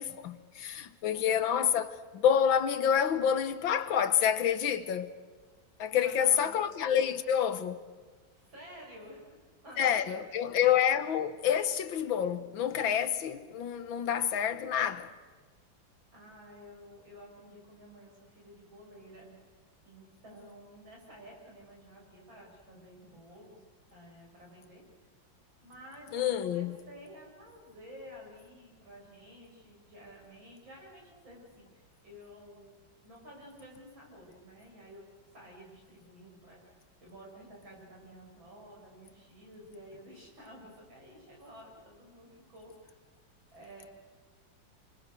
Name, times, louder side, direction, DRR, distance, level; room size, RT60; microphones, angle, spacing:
voice 1, 0.0-5.1 5.8-7.8 9.8-15.1 26.1-26.8, left 8 dB, 90° left, 2.0 m, -28 dB
voice 2, 1.1-1.4 5.9-6.7 8.3-10.7 16.1-19.4 19.8-23.6 23.9-24.8 25.6-32.8 33.0-35.1 35.3-36.7 37.0-42.9 43.5-43.9, equal, 85° right, 8.8 m, -52 dB
29.5 x 25.0 x 6.7 m
omnidirectional pair, 2.1 m